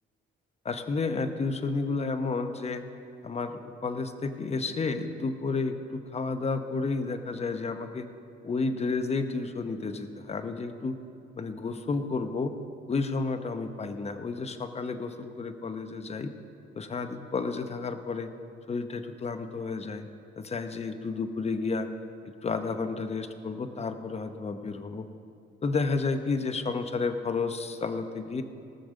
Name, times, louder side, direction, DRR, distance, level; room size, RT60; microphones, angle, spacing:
voice 1, 0.6-2.8 3.2-8.1 8.4-11.0 11.3-12.6 12.9-16.3 16.7-18.3 18.7-20.0 20.4-21.9 22.4-25.1 25.6-28.4, left 4 dB, 30° left, 9 dB, 0.9 m, -31 dB
18.5 x 6.6 x 6.5 m, 2.5 s
cardioid pair, 90°, 20 cm